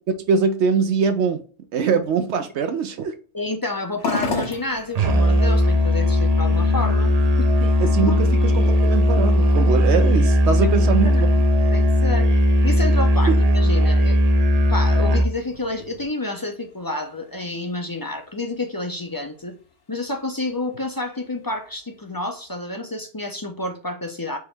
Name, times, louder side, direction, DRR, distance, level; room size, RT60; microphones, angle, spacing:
voice 1, 0.1-1.4 1.7-3.2 7.6-11.1 13.3-13.4, right 5 dB, 70° right, 0.8 m, -22 dB
voice 2, 3.3-7.1 8.1-8.2 11.0-11.2 11.7-12.3 12.6-14.2 14.6-19.6 19.9-24.4, left 2 dB, 30° left, 0.4 m, -29 dB
sound 1, 4.0-22.6, left 4 dB, 70° left, 1.3 m, -39 dB
Musical instrument, 5.0-15.3, left 1 dB, 45° right, 0.5 m, -17 dB
4.6 x 3.0 x 3.3 m
omnidirectional pair, 1.2 m